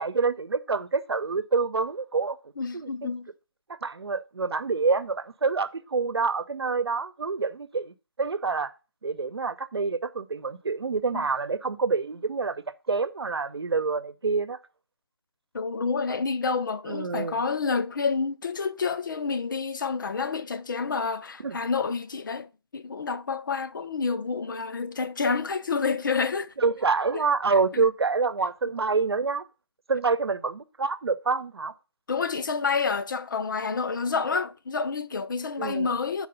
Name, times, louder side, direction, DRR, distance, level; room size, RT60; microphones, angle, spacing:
voice 1, 0.0-2.4 2.7-3.1 3.8-8.7 9.0-14.6 16.9-17.4 21.4-21.6 26.6-29.5 29.9-31.7 35.6-35.9, right 4 dB, 90° right, 0.8 m, -27 dB
voice 2, 2.6-3.3 11.1-11.3 15.5-26.5 27.1-27.2 27.7-27.8 32.1-36.3, left 5 dB, 55° left, 0.7 m, -29 dB
6.7 x 4.8 x 6.8 m
hypercardioid pair, 165°, 13 cm